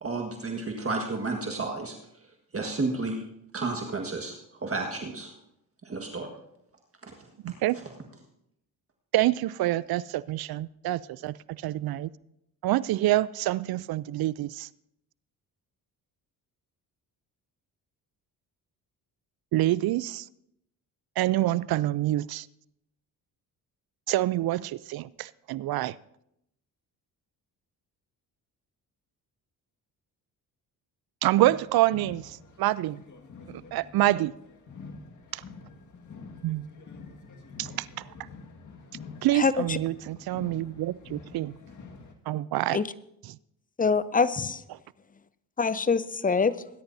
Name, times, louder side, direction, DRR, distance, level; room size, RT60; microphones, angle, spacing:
voice 1, 0.0-1.9 2.5-3.2 3.5-4.3 4.6-5.3 5.8-6.3 7.0-7.1, right 3 dB, 35° right, 2 dB, 1.6 m, -31 dB
voice 2, 7.4-7.8 9.1-12.1 12.6-14.7 19.5-20.3 21.2-22.5 24.1-26.0 31.2-33.0 33.5-34.3 35.3-35.4 36.4-36.7 37.6-37.9 39.2-41.6 42.3-42.8 43.2-43.4, right 15 dB, 60° right, 20 dB, 0.5 m, -27 dB
sound 1, 31.3-42.1, left 4 dB, 45° left, 1.8 m, -47 dB
voice 3, 39.3-39.8 42.7-42.9 43.8-44.6 45.6-46.6, left 5 dB, 20° left, 16 dB, 0.6 m, -24 dB
21.0 x 10.5 x 2.7 m, 0.80 s
supercardioid pair, 65°, 41 cm